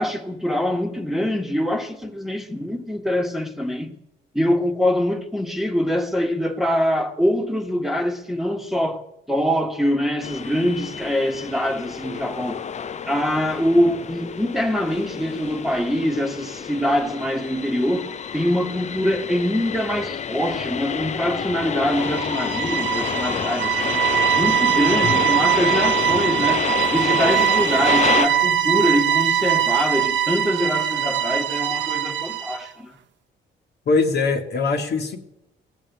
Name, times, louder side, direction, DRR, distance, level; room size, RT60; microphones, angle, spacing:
voice 1, 0.0-3.9 4.3-9.0 9.3-12.6 13.1-24.0 24.3-32.9, equal, ahead, 1.5 m, -24 dB
sound 1, 10.2-28.3, left 7 dB, 35° left, 0.5 m, -29 dB
sound 2, 21.9-32.7, right 10 dB, 65° right, 0.9 m, -22 dB
voice 2, 33.9-35.2, left 4 dB, 55° left, 1.6 m, -21 dB
17.0 x 7.3 x 9.3 m
cardioid pair, 90°, 20 cm